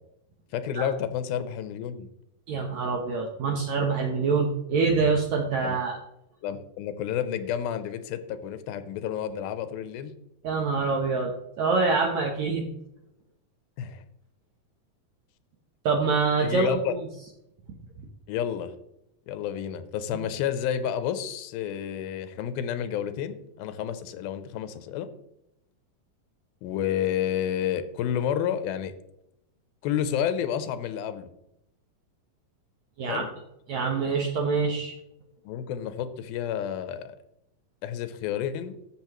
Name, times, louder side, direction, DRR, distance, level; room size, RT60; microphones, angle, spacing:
voice 1, 0.5-2.1 5.6-5.8 6.4-10.1 13.8-14.0 16.4-16.9 18.3-18.7 19.3-25.1 26.6-28.9 29.8-31.3 33.0-33.3 35.5-37.2 37.8-38.8, left 9 dB, 85° left, 11 dB, 2.5 m, -30 dB
voice 2, 2.5-6.0 10.4-12.7 15.9-17.1 33.0-33.2 33.7-34.9, right 4 dB, 70° right, 1 dB, 1.8 m, -25 dB
14.0 x 6.2 x 3.0 m, 0.85 s
omnidirectional pair, 4.2 m